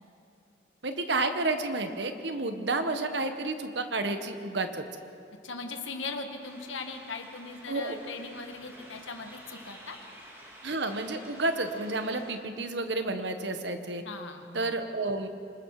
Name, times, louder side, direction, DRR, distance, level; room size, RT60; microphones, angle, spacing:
voice 1, 0.8-4.8 7.7-8.0 10.6-14.0 14.5-15.3, right 2 dB, 65° right, 7 dB, 1.4 m, -30 dB
voice 2, 5.4-10.0 14.1-14.8, left 4 dB, 90° left, 5 dB, 1.8 m, -39 dB
sound 1, 6.4-12.4, equal, 15° right, 2.5 m, -50 dB
26.5 x 20.5 x 4.9 m, 2.6 s
head